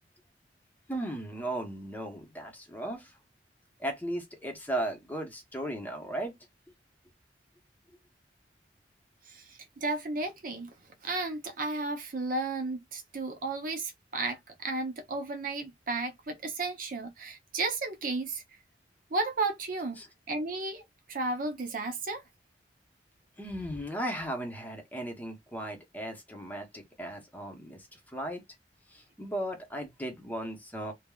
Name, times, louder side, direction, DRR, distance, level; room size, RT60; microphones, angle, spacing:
voice 1, 0.9-3.2 3.8-6.4 20.0-20.1 23.4-28.4 28.9-30.9, right 1 dB, 10° left, 0.8 m, -36 dB
voice 2, 9.3-10.7 11.0-18.4 19.1-20.0 20.3-20.8 21.1-22.2, right 3 dB, 50° right, 0.6 m, -33 dB
3.3 x 2.1 x 2.2 m
head